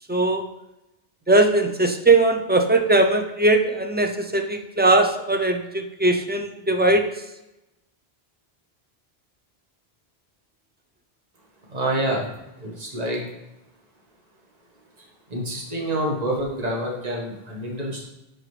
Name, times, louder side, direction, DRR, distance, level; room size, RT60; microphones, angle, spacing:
voice 1, 0.1-0.4 1.3-7.1, right 2 dB, 15° right, 5 dB, 0.4 m, -20 dB
voice 2, 11.7-12.3 12.6-13.2 15.3-18.0, right 1 dB, 40° right, -2 dB, 1.5 m, -27 dB
10.0 x 4.2 x 3.2 m, 0.94 s
omnidirectional pair, 1.0 m